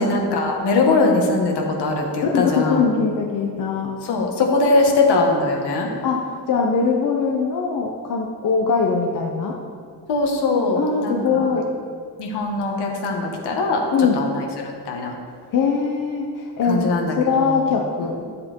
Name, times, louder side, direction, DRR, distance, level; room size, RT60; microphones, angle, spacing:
voice 1, 0.0-2.8 4.0-5.9 10.1-11.6 12.2-13.8 14.1-14.4 14.9-15.1 16.7-17.1 17.4-17.6, left 3 dB, 85° left, 0 dB, 1.9 m, -21 dB
voice 2, 2.2-3.9 6.0-9.6 10.7-11.7 13.9-14.2 15.5-18.2, left 5 dB, 55° left, 0 dB, 0.9 m, -21 dB
13.0 x 7.6 x 4.6 m, 2.1 s
wide cardioid pair, 175°, 39 cm